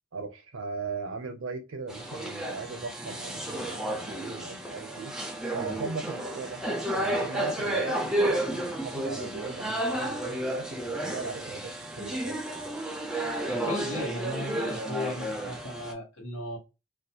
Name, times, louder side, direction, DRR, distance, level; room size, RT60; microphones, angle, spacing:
voice 1, 0.1-5.1 5.5-12.4, right 4 dB, 80° right, 0.5 m, -38 dB
sound 1, 1.9-15.9, right 1 dB, 5° right, 0.4 m, -32 dB
voice 2, 13.5-16.6, left 1 dB, 75° left, 1.0 m, -36 dB
2.4 x 2.2 x 2.7 m
head